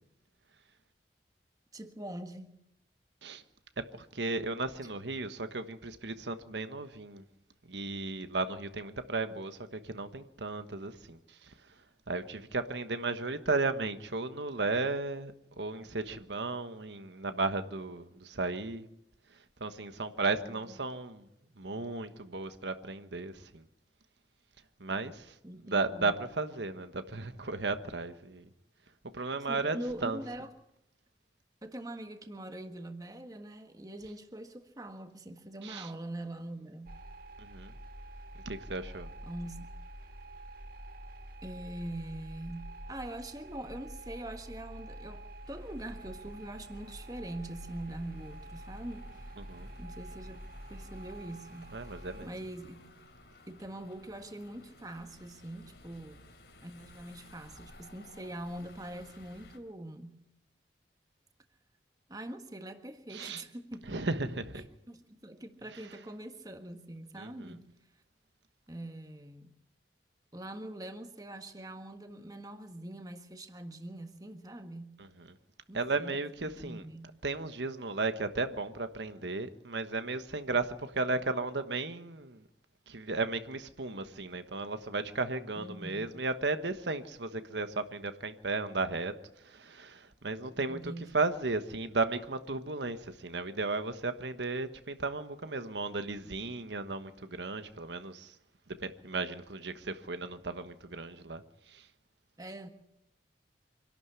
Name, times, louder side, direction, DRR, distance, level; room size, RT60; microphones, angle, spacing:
voice 1, 1.7-2.5 20.4-20.7 25.4-26.1 29.5-30.5 31.6-36.9 39.2-39.7 41.4-49.4 49.8-50.4 50.7-51.7 52.2-52.8 53.5-56.2 56.6-60.2 62.1-64.0 64.5-67.6 68.7-69.5 70.3-75.0 75.7-77.1 85.5-86.2 90.7-91.1 102.4-102.7, right 1 dB, 20° right, 1.5 m, -43 dB
voice 2, 3.8-7.2 7.7-11.5 12.1-18.8 19.6-21.2 21.6-23.6 24.8-25.3 25.6-28.5 29.1-30.2 35.6-35.9 37.4-37.7 38.4-39.1 49.4-49.7 51.7-52.3 63.1-63.4 63.9-64.6 67.2-67.6 75.7-76.8 77.2-82.4 82.9-89.1 89.4-98.3 98.8-101.9, right 3 dB, 80° right, 1.3 m, -35 dB
sound 1, 36.9-52.3, right 1 dB, 55° right, 1.7 m, -47 dB
sound 2, 45.4-59.6, left 2 dB, 65° left, 3.5 m, -57 dB
26.0 x 12.0 x 9.8 m
head